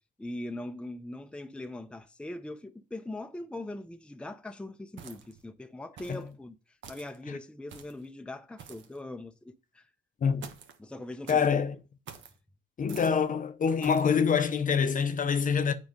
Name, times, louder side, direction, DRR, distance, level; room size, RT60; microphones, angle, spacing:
voice 1, 0.2-6.6 6.9-9.9 10.8-11.6, left 1 dB, 5° left, 0.6 m, -41 dB
sound 1, 5.0-5.4 6.0-6.3 6.8-7.2 7.7-8.0 8.6-9.0 10.4-10.8 11.3-11.6 12.1-12.4 12.9-13.2 13.8-14.1, right 7 dB, 70° right, 1.2 m, -47 dB
voice 2, 10.2-10.5 11.3-11.8 12.8-15.7, left 6 dB, 40° left, 0.7 m, -26 dB
8.0 x 4.9 x 5.2 m
cardioid pair, 90°, 20 cm